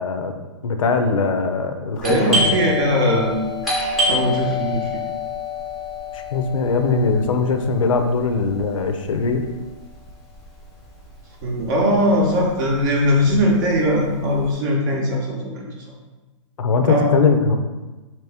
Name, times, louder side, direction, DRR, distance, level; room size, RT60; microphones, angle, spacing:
voice 1, 0.0-2.7 6.1-9.4 16.6-17.6, left 4 dB, 85° left, 6 dB, 0.5 m, -21 dB
Doorbell, 2.0-11.4 11.6-11.7 12.4-12.7 13.0-14.4, left 2 dB, ahead, 0.7 m, -27 dB
voice 2, 2.0-3.5 4.0-4.9 11.4-15.7 16.8-17.1, equal, 35° right, 0 dB, 0.7 m, -20 dB
3.0 x 2.9 x 3.3 m, 1.2 s
hypercardioid pair, 160°, 16 cm